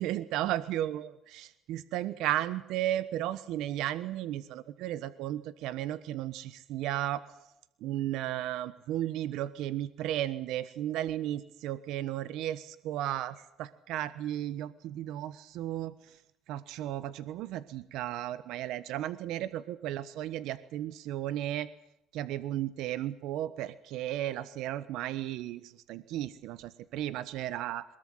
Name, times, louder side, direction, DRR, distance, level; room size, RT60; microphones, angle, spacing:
voice 1, 0.0-7.2 7.8-15.9 16.5-21.7 22.1-27.8, right 13 dB, 85° right, 15 dB, 1.2 m, -34 dB
22.5 x 21.5 x 7.9 m, 0.80 s
cardioid pair, 110°, 0 cm